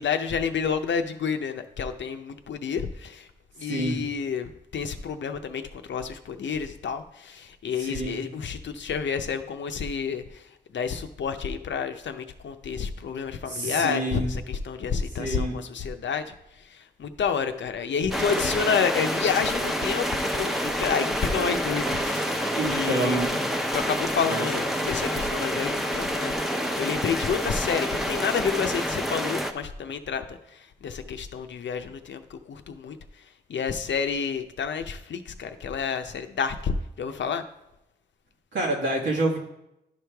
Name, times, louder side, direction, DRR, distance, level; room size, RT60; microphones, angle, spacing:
voice 1, 0.0-3.3 3.6-23.3 23.7-26.3 26.8-33.0 33.5-37.4, left 6 dB, 80° left, 8 dB, 0.6 m, -29 dB
voice 2, 3.6-4.0 7.8-8.2 13.5-14.3 15.2-15.6 22.5-23.4 24.3-24.5 24.7-25.1 38.5-39.4, right 2 dB, 85° right, -3 dB, 1.7 m, -28 dB
sound 1, 18.1-29.5, equal, ahead, 0.7 m, -28 dB
11.0 x 4.8 x 3.4 m, 0.87 s
cardioid pair, 60°, 19 cm